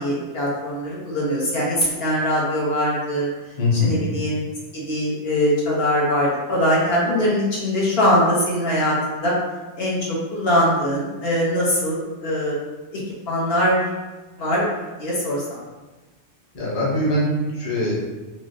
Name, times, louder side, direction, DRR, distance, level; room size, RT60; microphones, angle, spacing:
voice 1, 0.0-3.3 3.7-4.4 4.7-9.3 9.8-12.6 12.9-13.0 13.3-13.8 14.4-14.7 15.0-15.6, equal, 60° left, -5 dB, 1.0 m, -22 dB
voice 2, 3.6-4.0 16.5-17.9, left 1 dB, 35° left, -5 dB, 0.7 m, -22 dB
3.2 x 2.5 x 2.6 m, 1.2 s
omnidirectional pair, 1.2 m